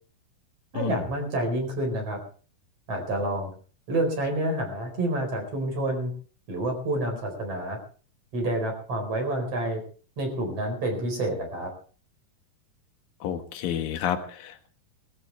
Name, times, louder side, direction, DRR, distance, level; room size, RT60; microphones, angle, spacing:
voice 1, 0.7-2.2 2.9-3.5 3.9-6.1 6.5-7.8 8.3-9.8 10.2-11.7, right 1 dB, 45° right, 3 dB, 5.5 m, -28 dB
voice 2, 13.2-14.7, left 9 dB, 75° left, 7 dB, 3.3 m, -30 dB
22.5 x 14.0 x 3.4 m, 0.40 s
omnidirectional pair, 4.0 m